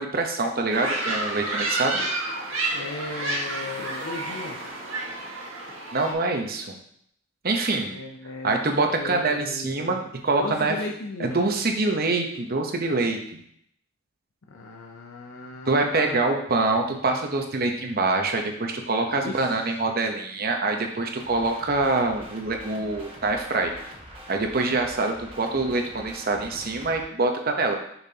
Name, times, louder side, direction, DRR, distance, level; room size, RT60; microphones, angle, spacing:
voice 1, 0.0-2.0 5.9-6.7 7.4-7.9 8.4-10.0 10.2-10.8 11.2-13.2 15.7-23.7 24.3-27.8, right 3 dB, 50° right, 4 dB, 0.9 m, -25 dB
sound 1, 0.7-6.1, right 2 dB, 85° right, 1.6 m, -30 dB
voice 2, 2.7-4.6 7.9-10.0 10.4-11.4 14.5-16.3 19.2-19.5, left 2 dB, 85° left, 1 dB, 0.7 m, -36 dB
sound 2, 21.2-27.0, equal, 25° right, 1.3 m, -44 dB
6.9 x 5.9 x 2.9 m, 0.69 s
head